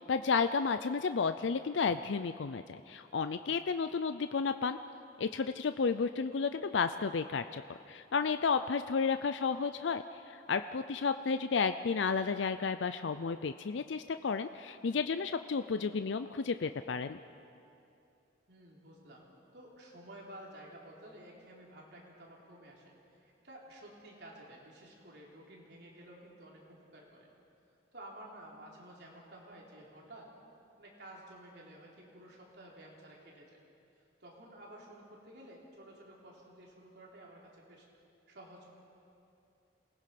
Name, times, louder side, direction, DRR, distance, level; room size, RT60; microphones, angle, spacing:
voice 1, 0.0-4.8 5.2-7.6 7.9-17.2, left 5 dB, 75° left, 10 dB, 0.5 m, -32 dB
voice 2, 18.5-19.3 19.5-27.3 27.9-30.3 30.8-33.6 34.2-37.9 38.3-38.7, right 1 dB, 60° right, -3 dB, 3.9 m, -52 dB
27.5 x 19.0 x 5.9 m, 2.7 s
head